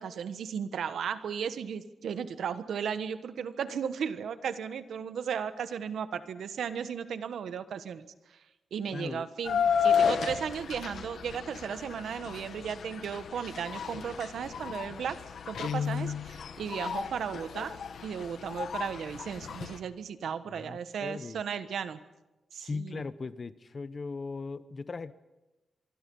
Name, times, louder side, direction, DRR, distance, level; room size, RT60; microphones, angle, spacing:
voice 1, 0.0-8.0 8.3-8.4 8.7-15.2 15.5-17.8 18.0-22.0 22.5-23.0, right 7 dB, 80° right, 11 dB, 1.3 m, -35 dB
voice 2, 8.9-9.3 20.5-21.4 22.6-25.1, left 4 dB, 35° left, 14 dB, 0.9 m, -38 dB
sound 1, 9.4-19.8, left 7 dB, 65° left, 1.4 m, -33 dB
Guitar, 15.5-16.3, left 7 dB, 90° left, 0.9 m, -32 dB
24.5 x 24.0 x 5.5 m, 1.0 s
wide cardioid pair, 125°, 0 cm